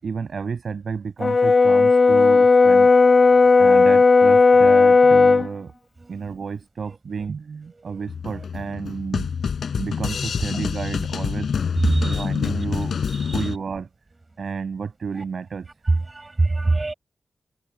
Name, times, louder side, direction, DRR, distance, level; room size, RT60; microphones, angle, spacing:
voice 1, 0.0-2.9 3.6-5.7 6.1-9.3 9.8-11.5 12.0-13.0 13.3-13.9 14.4-15.7, right 5 dB, 65° right, 7.3 m, -31 dB
Brass instrument, 1.2-5.5, left 4 dB, 40° left, 0.3 m, -14 dB
sound 1, 8.1-13.6, left 6 dB, 85° left, 6.2 m, -27 dB
voice 2, 11.9-12.3 13.1-13.5 16.1-16.9, right 3 dB, 30° right, 5.7 m, -24 dB
wide cardioid pair, 125°, 0 cm